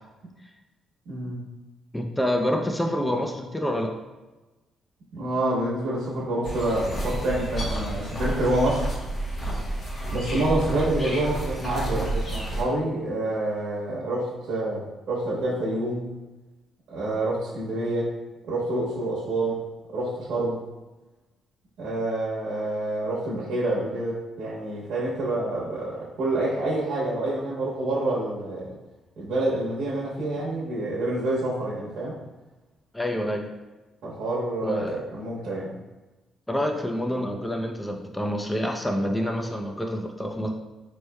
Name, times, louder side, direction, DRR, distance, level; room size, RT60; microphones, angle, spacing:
voice 1, 1.1-1.4 5.1-8.9 10.1-14.8 15.1-16.1 16.9-18.1 18.5-19.6 19.9-20.6 21.8-28.7 29.2-32.1 34.0-35.7, right 1 dB, 75° right, -7 dB, 1.0 m, -27 dB
voice 2, 1.9-3.9 32.9-33.5 34.6-35.0 36.5-40.5, equal, 10° left, 3 dB, 0.4 m, -27 dB
sound 1, 6.4-12.6, right 1 dB, 45° left, 1.0 m, -30 dB
4.2 x 3.1 x 2.2 m, 1.1 s
cardioid pair, 90°, 0 cm